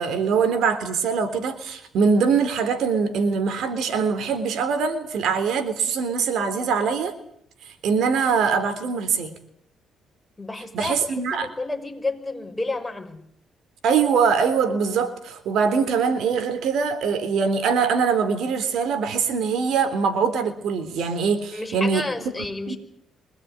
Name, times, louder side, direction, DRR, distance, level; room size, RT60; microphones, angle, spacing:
voice 1, 0.0-7.1 7.8-9.3 10.7-11.5 13.8-22.0 22.7-22.8, right 5 dB, 75° right, 11 dB, 3.7 m, -23 dB
voice 2, 10.4-13.2 21.5-22.8, left 2 dB, 15° left, 4 dB, 5.6 m, -31 dB
25.0 x 19.5 x 9.7 m, 0.71 s
cardioid pair, 90°, 0 cm